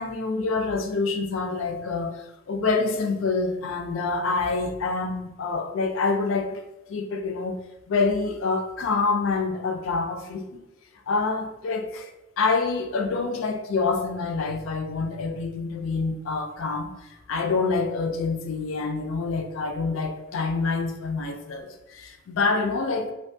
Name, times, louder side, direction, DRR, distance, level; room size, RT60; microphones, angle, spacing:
voice 1, 0.0-6.6 6.9-7.6 7.9-10.6 11.1-12.1 12.4-16.9 17.3-23.1, left 4 dB, 75° left, 5 dB, 0.4 m, -26 dB
2.5 x 2.2 x 2.6 m, 0.97 s
head